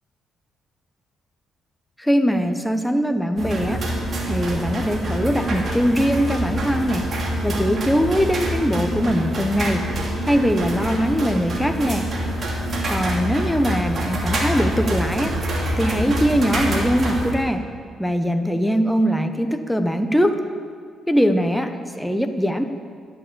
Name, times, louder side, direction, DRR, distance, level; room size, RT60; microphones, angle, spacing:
voice 1, 2.0-3.9 4.3-7.1 7.4-9.9 10.2-12.1 12.9-17.6 18.0-20.4 21.1-22.6, equal, ahead, 6 dB, 0.8 m, -21 dB
sound 1, 3.4-17.3, right 1 dB, 45° right, 2.8 m, -26 dB
11.5 x 11.0 x 7.5 m, 2.1 s
cardioid pair, 90°, 0 cm